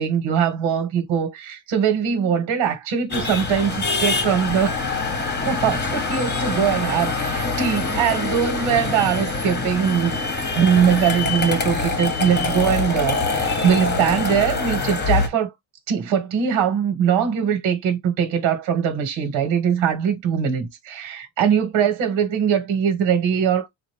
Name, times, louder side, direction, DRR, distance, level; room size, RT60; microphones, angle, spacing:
voice 1, 0.0-4.8 5.4-10.2 10.5-15.5 15.9-23.7, right 8 dB, 75° right, 1.7 m, -21 dB
sound 1, 3.1-15.3, left 3 dB, 20° left, 1.1 m, -24 dB
3.9 x 2.6 x 3.2 m
cardioid pair, 130°, 47 cm